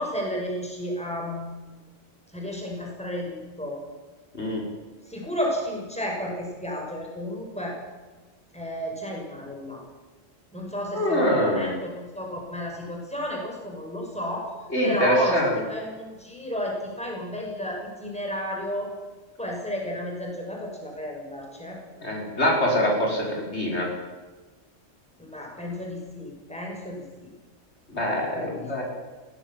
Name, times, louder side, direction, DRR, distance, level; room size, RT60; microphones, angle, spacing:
voice 1, 0.0-1.5 2.3-3.8 5.1-7.8 8.5-9.8 10.5-14.5 14.8-15.4 15.7-18.9 19.4-21.8 25.2-27.3 28.3-28.6, equal, 5° left, -1 dB, 6.1 m, -32 dB
voice 2, 10.9-11.7 14.7-15.6 22.0-23.9 27.9-28.8, equal, 60° left, -2 dB, 5.7 m, -24 dB
22.0 x 17.5 x 7.4 m, 1.3 s
omnidirectional pair, 1.3 m